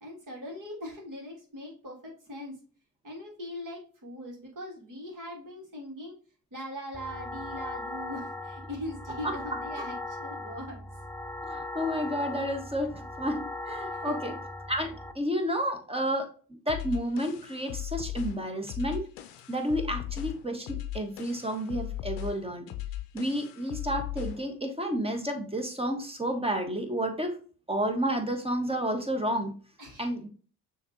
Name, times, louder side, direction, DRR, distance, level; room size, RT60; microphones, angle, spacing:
voice 1, 0.0-2.6 3.0-6.2 6.5-10.8 13.9-14.3 29.8-30.1, left 1 dB, 45° right, -2 dB, 2.2 m, -41 dB
sound 1, 6.9-15.1, left 2 dB, 5° left, 0.5 m, -38 dB
voice 2, 11.4-14.3 14.7-16.3 16.7-19.1 19.5-20.7 20.9-22.7 23.1-27.4 27.7-29.5 30.0-30.3, equal, 10° right, 4 dB, 1.3 m, -31 dB
sound 2, 16.7-24.5, left 14 dB, 65° left, 0.7 m, -38 dB
6.4 x 2.9 x 2.8 m, 0.40 s
hypercardioid pair, 45°, 46 cm